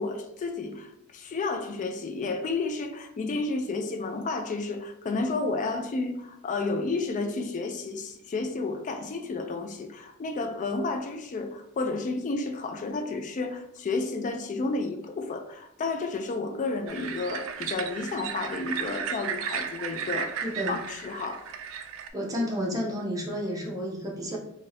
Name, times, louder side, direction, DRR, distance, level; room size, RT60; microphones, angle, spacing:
voice 1, 0.0-21.4, left 3 dB, 35° left, 0.3 m, -31 dB
sound 1, 16.9-22.1, right 7 dB, 65° right, 0.3 m, -34 dB
voice 2, 20.4-20.8 22.1-24.4, equal, 15° right, 0.7 m, -31 dB
2.7 x 2.6 x 3.1 m
head